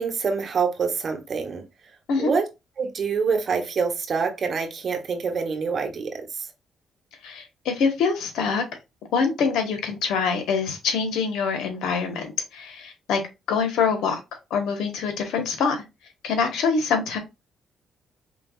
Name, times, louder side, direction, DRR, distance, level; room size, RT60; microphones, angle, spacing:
voice 1, 0.0-1.6 2.2-2.4 2.8-6.5, right 5 dB, 50° right, 1.1 m, -26 dB
voice 2, 7.2-8.6 9.1-13.2 13.5-14.2 14.5-15.8 16.2-17.2, left 5 dB, 85° left, 1.1 m, -24 dB
4.5 x 3.3 x 2.3 m
cardioid pair, 90°, 0 cm